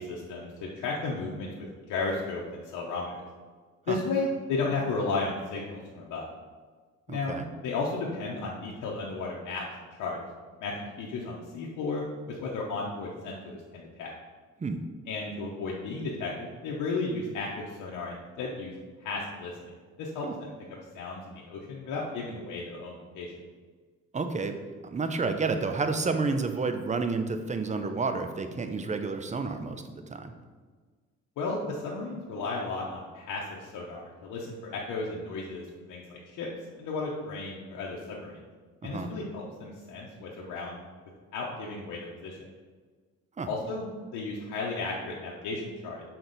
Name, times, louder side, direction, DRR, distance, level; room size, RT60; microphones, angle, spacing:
voice 1, 0.0-3.2 3.9-6.2 7.1-7.4 7.6-9.6 10.0-10.2 10.6-14.1 15.1-18.7 19.0-19.7 20.0-20.5 20.9-23.3 31.4-36.5 36.8-38.4 38.8-40.8 41.3-42.4 43.5-43.9 44.1-46.0, left 3 dB, 85° left, -3 dB, 0.8 m, -34 dB
voice 2, 7.1-7.5 14.6-14.8 20.2-20.3 24.1-24.5 24.8-30.3 38.8-39.1 43.4-43.5, right 4 dB, 25° right, 7 dB, 0.6 m, -30 dB
6.0 x 4.3 x 3.9 m, 1.5 s
cardioid pair, 90°, 30 cm